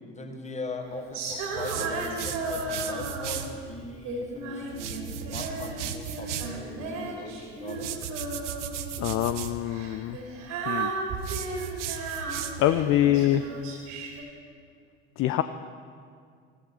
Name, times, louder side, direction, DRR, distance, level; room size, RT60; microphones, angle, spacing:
voice 1, 0.0-7.9, left 2 dB, 20° left, 4 dB, 1.8 m, -40 dB
Female singing, 1.1-3.5 4.0-5.8 6.0-8.9 9.6-14.2, right 3 dB, 55° right, 2.9 m, -34 dB
sound 1, 1.6-3.5 4.7-6.6 7.7-9.6 11.2-12.8, right 9 dB, 70° right, 0.8 m, -36 dB
voice 2, 9.0-10.2 10.7-10.9 12.6-13.4 15.2-15.4, left 13 dB, 35° left, 11 dB, 0.5 m, -24 dB
15.5 x 13.5 x 4.4 m, 2.2 s
figure-of-eight pair, 60°, 37 cm